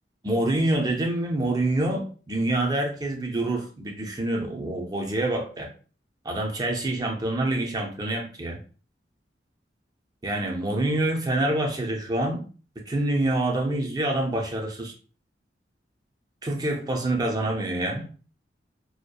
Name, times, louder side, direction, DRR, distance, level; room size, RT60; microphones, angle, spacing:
voice 1, 0.2-5.7 6.2-8.6 10.2-12.4 12.9-14.9 16.4-18.1, right 1 dB, 20° right, 1 dB, 0.4 m, -26 dB
2.6 x 2.1 x 2.3 m, 0.38 s
head